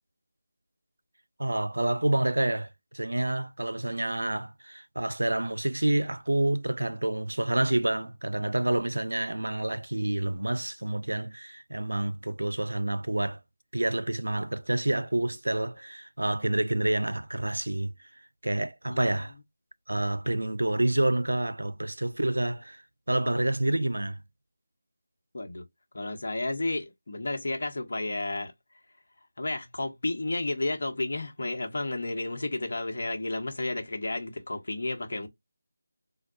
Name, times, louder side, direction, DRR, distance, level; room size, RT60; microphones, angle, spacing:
voice 1, 1.4-13.4 13.7-17.9 18.4-19.3 19.9-24.2, right 1 dB, 90° right, 0.4 m, -28 dB
voice 2, 25.3-25.6 25.9-28.5 29.4-35.3, left 2 dB, 60° left, 1.0 m, -32 dB
4.5 x 2.2 x 2.5 m
figure-of-eight pair, 165°, 0 cm